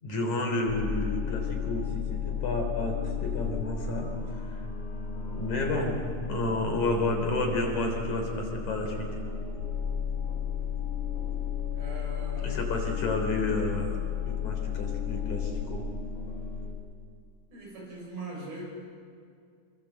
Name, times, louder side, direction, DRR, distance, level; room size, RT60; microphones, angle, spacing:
voice 1, 0.0-4.1 4.4-4.6 5.3-9.1 12.4-13.9 14.2-15.8, left 2 dB, 55° left, 3 dB, 5.0 m, -31 dB
sound 1, 0.7-16.7, left 7 dB, 85° left, 4.7 m, -33 dB
voice 2, 11.7-12.8 17.5-18.6, right 3 dB, 85° right, -2 dB, 9.5 m, -41 dB
28.0 x 23.5 x 8.0 m, 2.2 s
omnidirectional pair, 4.2 m